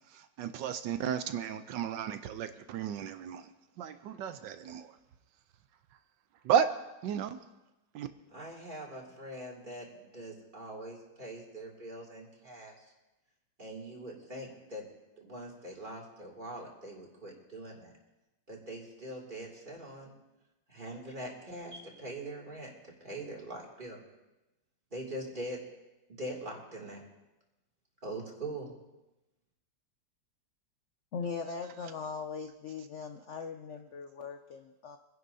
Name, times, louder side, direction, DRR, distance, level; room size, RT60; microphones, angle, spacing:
voice 1, 0.4-3.4 3.8-4.9 6.4-6.7 7.0-7.3 7.9-8.1, right 8 dB, 80° right, 10 dB, 1.3 m, -32 dB
voice 2, 8.3-12.9 13.6-14.9 15.2-17.9 18.5-20.1 20.7-22.7 23.0-24.0 24.9-25.6 26.1-27.0 28.0-28.7, right 1 dB, 25° right, -3 dB, 2.6 m, -43 dB
voice 3, 31.1-35.0, left 5 dB, 65° left, 6 dB, 0.7 m, -40 dB
25.0 x 11.0 x 2.7 m, 0.99 s
omnidirectional pair, 2.0 m